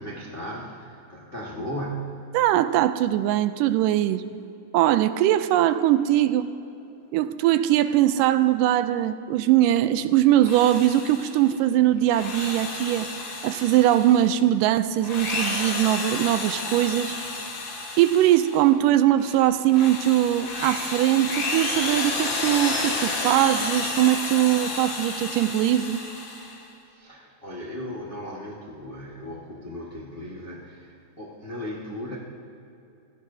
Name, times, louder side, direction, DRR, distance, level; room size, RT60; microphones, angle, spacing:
voice 1, 0.0-2.2 26.9-32.2, equal, 45° left, -4 dB, 0.7 m, -36 dB
voice 2, 2.3-4.2 4.7-6.5 7.1-13.1 13.4-17.2 18.0-26.0, right 13 dB, 85° right, 12 dB, 2.1 m, -21 dB
Drill, 10.3-11.5 12.0-14.4 14.9-18.7 19.1-26.6, left 3 dB, 70° left, 3.5 m, -31 dB
26.5 x 16.0 x 2.7 m, 2.7 s
omnidirectional pair, 3.8 m